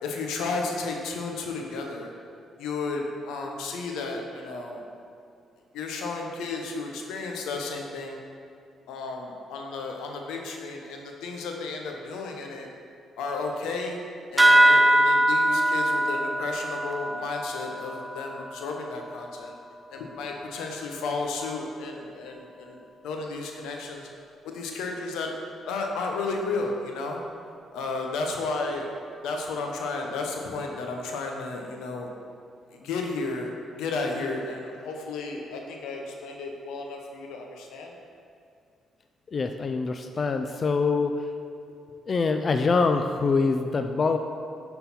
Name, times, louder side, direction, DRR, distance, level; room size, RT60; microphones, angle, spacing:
voice 1, 0.0-2.1 2.6-4.8 5.7-8.2 8.9-12.7 13.2-14.0 14.3-19.5 19.9-22.8 23.0-24.1 24.4-27.2 27.7-28.9 29.2-32.1 32.7-33.5 33.8-37.9, left 3 dB, 90° left, 2 dB, 0.9 m, -33 dB
sound 1, 14.4-19.3, right 1 dB, 15° right, 0.6 m, -22 dB
voice 2, 39.3-41.1 42.1-44.2, left 4 dB, 40° left, 6 dB, 0.3 m, -24 dB
9.9 x 3.9 x 4.2 m, 2.4 s
cardioid pair, 90°, 0 cm